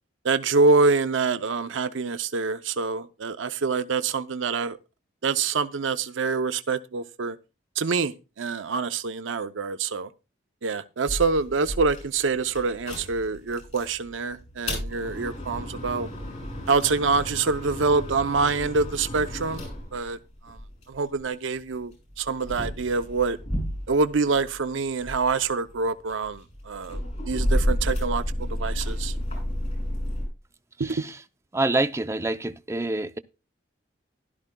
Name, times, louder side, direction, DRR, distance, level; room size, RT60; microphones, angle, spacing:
voice 1, 0.2-4.8 5.2-7.4 7.8-10.1 10.6-16.1 16.7-19.6 19.9-20.2 20.4-20.6 20.9-23.4 23.9-27.0 27.3-29.1 30.8-31.0, right 4 dB, 85° right, 0.6 m, -26 dB
sound 1, 11.1-13.9 14.4-21.2 21.9-24.6 24.9-30.3, equal, 35° left, 7.2 m, -31 dB
voice 2, 30.8-31.2 31.5-33.2, right 2 dB, 15° right, 0.5 m, -27 dB
15.5 x 12.0 x 2.2 m
head